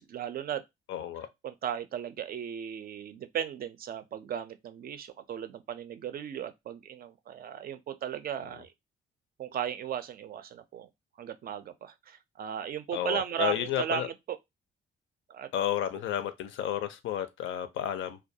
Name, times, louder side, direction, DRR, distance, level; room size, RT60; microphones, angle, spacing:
voice 1, 0.1-0.6 1.4-8.7 9.4-10.9 11.2-14.4 15.3-15.5, right 9 dB, 50° right, 0.4 m, -36 dB
voice 2, 0.9-1.3 12.9-14.1 15.5-18.2, left 11 dB, 80° left, 0.4 m, -32 dB
2.3 x 2.2 x 2.6 m
cardioid pair, 90°, 20 cm